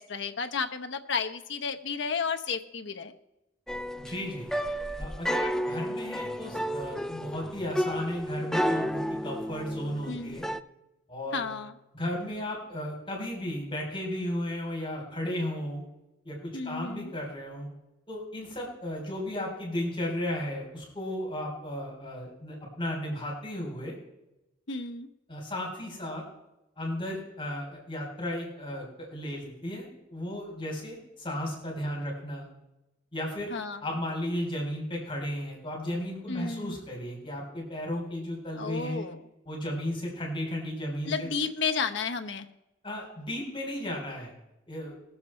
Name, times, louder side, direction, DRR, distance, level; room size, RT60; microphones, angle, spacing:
voice 1, 0.0-3.1 10.1-10.4 11.3-11.7 16.5-17.1 24.7-25.1 33.5-33.8 36.3-36.8 38.6-39.2 41.1-42.5, left 5 dB, 65° left, 6 dB, 0.9 m, -32 dB
sound 1, 3.7-10.6, equal, 5° left, 0.3 m, -32 dB
voice 2, 4.0-4.5 5.0-10.4 11.1-11.5 11.9-15.8 16.2-17.7 18.1-23.9 25.3-26.2 26.8-32.5 33.1-39.0 39.4-41.3 42.8-44.3 44.7-45.0, left 1 dB, 25° left, -2 dB, 3.3 m, -34 dB
20.5 x 7.3 x 4.3 m, 0.95 s
head